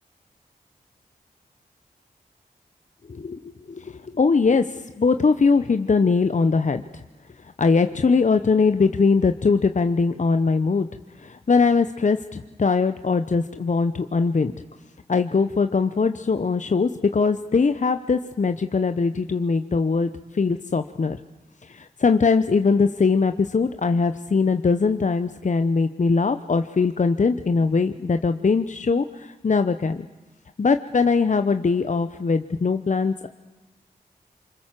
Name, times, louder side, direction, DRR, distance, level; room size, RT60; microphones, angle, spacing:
voice 1, 4.1-4.6 5.0-6.8 7.6-10.9 11.2-14.5 15.1-20.1 20.4-21.2 22.0-30.1 30.6-33.3, left 4 dB, 45° left, 9 dB, 0.9 m, -21 dB
25.5 x 23.0 x 7.5 m, 1.2 s
cardioid pair, 40°, 17 cm